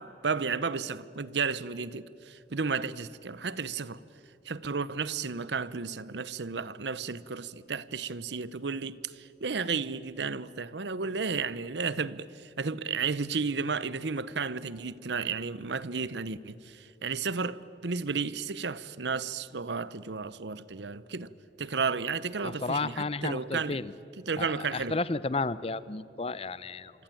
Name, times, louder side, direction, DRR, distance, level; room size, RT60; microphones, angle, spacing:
voice 1, 0.0-4.0 4.4-21.3 21.6-23.8 24.2-25.0, right 5 dB, 70° right, 0.8 m, -33 dB
voice 2, 22.4-23.9 24.4-26.9, left 3 dB, 35° left, 0.7 m, -32 dB
27.0 x 24.0 x 9.0 m
head